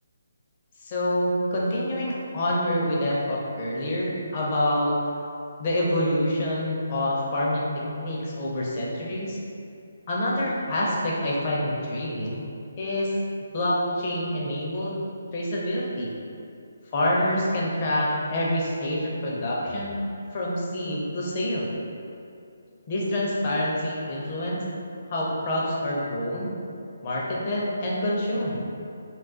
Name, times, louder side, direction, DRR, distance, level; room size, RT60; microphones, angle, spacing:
voice 1, 0.8-5.0 5.6-9.4 10.1-12.4 12.8-13.1 13.5-15.0 15.3-16.1 16.9-20.0 20.3-21.7 22.9-24.6 25.1-26.5 27.0-28.6, left 1 dB, 35° left, -5 dB, 0.6 m, -26 dB
2.3 x 2.3 x 3.6 m, 2.6 s
figure-of-eight pair, 155°, 0 cm